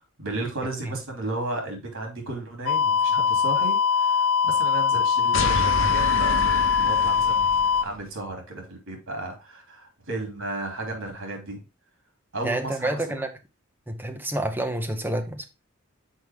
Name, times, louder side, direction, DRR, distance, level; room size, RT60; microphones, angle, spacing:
voice 1, 0.2-6.5 6.8-11.6 12.3-13.2, right 2 dB, 90° right, 3.0 m, -34 dB
sound 1, 2.7-7.8, left 6 dB, 90° left, 0.4 m, -22 dB
sound 2, 5.3-7.9, left 3 dB, 70° left, 0.9 m, -29 dB
voice 2, 12.4-13.3 13.9-15.5, right 1 dB, 10° right, 0.8 m, -28 dB
6.3 x 4.9 x 3.6 m
head